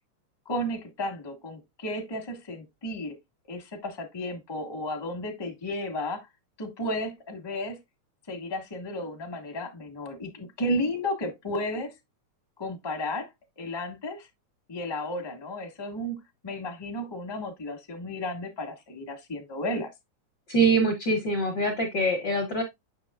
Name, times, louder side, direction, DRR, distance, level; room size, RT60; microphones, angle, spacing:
voice 1, 0.5-3.2 3.5-6.2 6.6-7.8 8.3-11.9 12.6-13.3 13.6-14.3 14.7-16.2 16.4-19.9, left 1 dB, 25° left, 0.5 m, -33 dB
voice 2, 20.5-22.6, right 2 dB, 65° left, 1.1 m, -24 dB
6.7 x 6.2 x 2.3 m
omnidirectional pair, 3.3 m